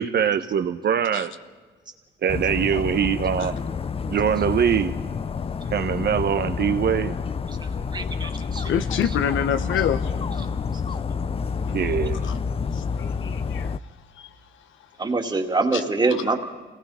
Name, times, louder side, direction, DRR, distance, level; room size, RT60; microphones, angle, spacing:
voice 1, 0.0-1.3 2.2-3.6 4.1-4.9 5.7-7.1 11.7-12.2, right 8 dB, 55° right, 1.0 m, -23 dB
Dog, 2.3-13.8, left 5 dB, 30° left, 0.5 m, -28 dB
voice 2, 7.9-8.7 9.0-9.2 15.0-16.5, right 3 dB, 20° right, 2.3 m, -24 dB
voice 3, 8.6-10.0 12.2-12.3 13.2-13.7, left 8 dB, 75° left, 1.0 m, -24 dB
27.0 x 18.5 x 5.7 m
cardioid pair, 90°, 20 cm